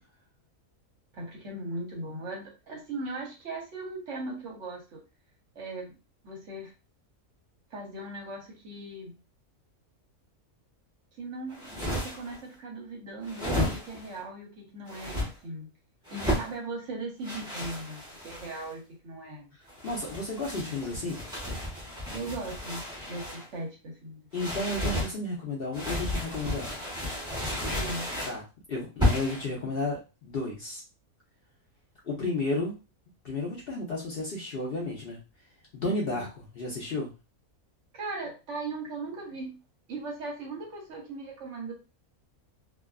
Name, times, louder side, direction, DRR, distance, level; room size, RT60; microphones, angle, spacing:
voice 1, 1.1-5.0 5.5-5.9 6.2-6.7 7.7-9.1 11.2-15.7 16.1-19.5 22.1-24.2 27.7-28.1 35.8-36.2 37.9-39.6 39.9-41.7, right 2 dB, 60° right, 1 dB, 1.0 m, -38 dB
sound 1, 11.5-12.4 13.2-14.1 14.9-15.3 16.1-16.5 17.2-18.7 19.7-23.5 24.3-25.1 25.7-28.4 29.0-29.5, left 1 dB, 5° right, 0.8 m, -32 dB
voice 2, 19.8-21.2 24.3-26.8 28.3-30.8 32.0-32.7 33.2-35.2 35.7-36.3 36.5-37.1, left 2 dB, 55° left, -4 dB, 0.7 m, -32 dB
2.6 x 2.3 x 2.3 m, 0.29 s
omnidirectional pair, 1.5 m